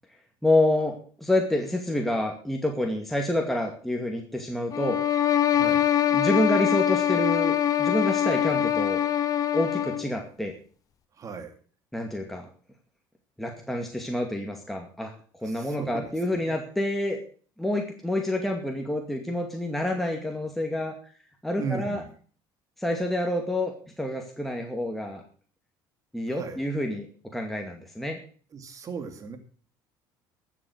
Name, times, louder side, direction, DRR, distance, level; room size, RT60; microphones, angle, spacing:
voice 1, 0.4-5.0 6.1-9.0 9.5-10.5 11.9-12.5 13.4-15.1 15.4-17.2 17.6-20.9 21.4-22.0 22.8-25.2 26.1-27.1 27.3-28.2, left 1 dB, ahead, 1 dB, 2.3 m, -28 dB
sound 1, 4.7-10.1, left 10 dB, 40° left, 1.0 m, -24 dB
voice 2, 5.5-5.8 11.1-11.6 15.4-16.6 21.6-22.2 26.3-26.6 28.5-29.4, right 5 dB, 40° right, 7 dB, 2.7 m, -37 dB
12.5 x 7.5 x 7.9 m, 0.43 s
supercardioid pair, 105°, 9 cm